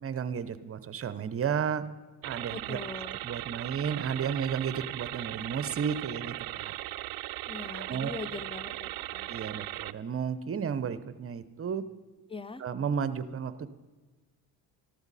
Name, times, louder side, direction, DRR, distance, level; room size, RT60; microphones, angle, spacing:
voice 1, 0.0-1.8 2.2-2.8 3.2-6.7 7.7-8.2 9.3-11.8 12.6-13.7, right 7 dB, 35° right, 14 dB, 0.8 m, -33 dB
sound 1, 2.2-9.9, right 17 dB, 65° right, 0.5 m, -38 dB
voice 2, 2.5-3.2 7.5-9.3 12.3-12.6, left 4 dB, 15° left, 15 dB, 0.6 m, -41 dB
13.0 x 13.0 x 4.1 m, 1.3 s
supercardioid pair, 75°, 40 cm